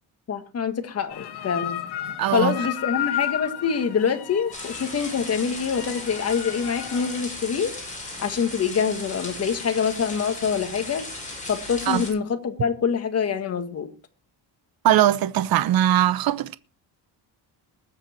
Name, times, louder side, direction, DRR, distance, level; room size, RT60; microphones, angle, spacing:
voice 1, 0.3-1.8 2.3-7.7 8.2-11.0 11.5-13.9, left 6 dB, 35° left, 1.8 m, -25 dB
sound 1, 1.1-7.2, left 11 dB, 70° left, 1.7 m, -33 dB
voice 2, 2.2-2.6 11.9-12.0 14.8-16.6, right 12 dB, 60° right, 0.9 m, -20 dB
sound 2, 4.5-12.1, left 2 dB, 20° left, 6.7 m, -37 dB
20.5 x 8.1 x 4.4 m
cardioid pair, 165°, 41 cm